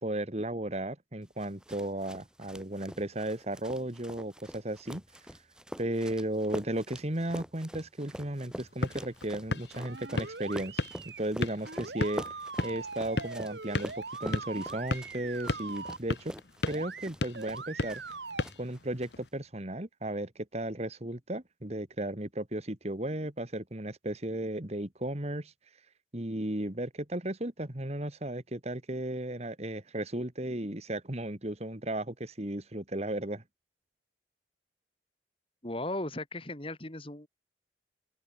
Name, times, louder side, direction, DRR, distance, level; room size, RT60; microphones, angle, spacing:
voice 1, 0.0-5.0 5.8-10.8 11.2-13.9 14.2-16.3 16.6-18.0 18.6-25.5 26.1-33.4, right 1 dB, 40° right, 2.2 m, -35 dB
sound 1, 1.4-18.2 18.4-19.1, equal, 5° right, 4.6 m, -45 dB
sound 2, 8.5-19.3, left 2 dB, 75° left, 1.4 m, -37 dB
sound 3, 9.7-11.2 11.7-16.0 16.7-17.1 17.3-18.4, right 4 dB, 75° right, 2.7 m, -42 dB
voice 2, 35.6-37.3, left 1 dB, 30° left, 3.0 m, -36 dB
open air
head